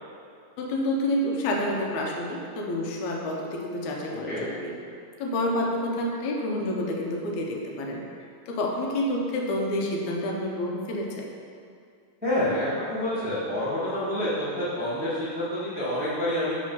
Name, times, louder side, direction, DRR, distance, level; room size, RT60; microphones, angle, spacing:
voice 1, 0.6-4.7 5.2-8.0 8.5-11.3, left 1 dB, 85° left, 0 dB, 2.1 m, -28 dB
voice 2, 12.2-16.5, left 1 dB, 10° right, -10 dB, 0.5 m, -28 dB
6.5 x 3.8 x 5.5 m, 2.4 s
omnidirectional pair, 3.4 m